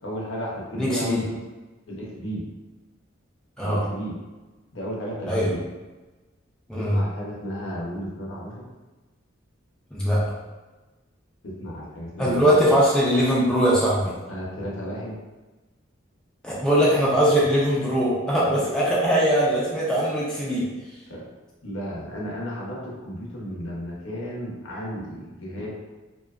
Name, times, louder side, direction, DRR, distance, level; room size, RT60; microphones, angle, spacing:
voice 1, 0.0-1.4 1.9-2.4 3.6-4.2 4.7-5.6 6.7-8.6 11.4-12.5 14.3-15.2 18.5-18.7 21.1-21.2 21.6-25.7, equal, 65° left, -4 dB, 0.7 m, -33 dB
voice 2, 0.8-1.2 3.6-3.8 5.3-5.5 6.7-7.0 9.9-10.2 12.2-14.1 16.4-20.7, equal, 5° left, -7 dB, 0.3 m, -21 dB
2.7 x 2.2 x 2.3 m, 1.2 s
head